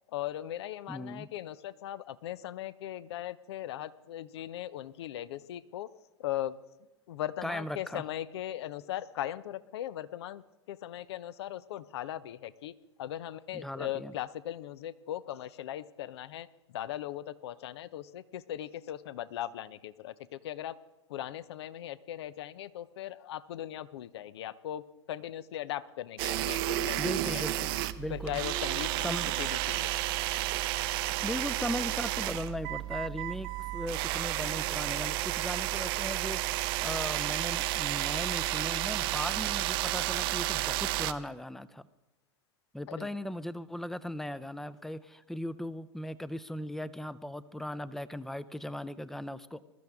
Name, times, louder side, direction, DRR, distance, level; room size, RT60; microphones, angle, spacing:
voice 1, 0.1-5.9 6.2-6.6 7.1-20.7 21.1-27.4 28.1-30.2 42.9-43.1, left 12 dB, 65° left, 17 dB, 0.7 m, -39 dB
voice 2, 0.9-1.3 7.4-8.0 13.5-14.1 27.0-28.4 29.0-29.4 31.2-41.8 42.7-49.6, left 1 dB, ahead, 16 dB, 0.6 m, -38 dB
sound 1, 26.2-41.1, right 16 dB, 55° right, 0.7 m, -32 dB
21.0 x 13.0 x 3.6 m, 1.0 s
hypercardioid pair, 95°, 15 cm